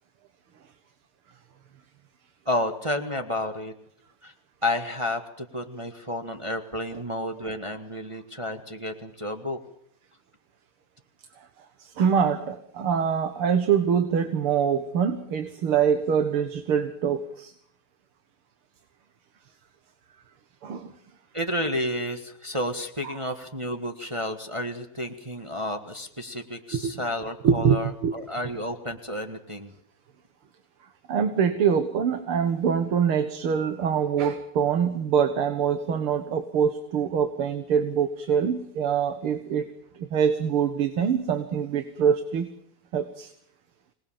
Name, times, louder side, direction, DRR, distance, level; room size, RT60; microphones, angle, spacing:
voice 1, 2.4-3.7 4.2-4.3 4.6-9.6 21.3-29.7, left 1 dB, 15° right, 5 dB, 1.5 m, -31 dB
voice 2, 11.4-17.5 20.6-20.9 23.0-23.2 26.7-27.0 27.4-28.2 31.1-39.7 40.0-42.5 42.9-43.3, right 7 dB, 80° right, 8 dB, 2.4 m, -24 dB
26.5 x 19.5 x 7.4 m, 0.67 s
omnidirectional pair, 2.4 m